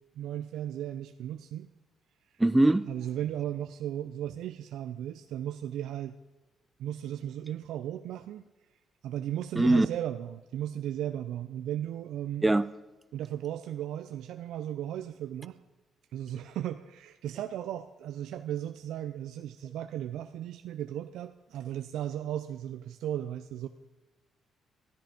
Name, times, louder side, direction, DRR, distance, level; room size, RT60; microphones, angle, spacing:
voice 1, 0.1-1.7 2.9-6.2 6.8-8.4 9.0-12.4 13.1-15.6 16.1-23.7, right 11 dB, 85° right, 8 dB, 0.6 m, -36 dB
voice 2, 2.4-2.9 9.6-9.9 12.4-12.7, right 2 dB, 10° right, 14 dB, 0.7 m, -22 dB
13.5 x 13.0 x 5.2 m, 1.1 s
cardioid pair, 90°, 0 cm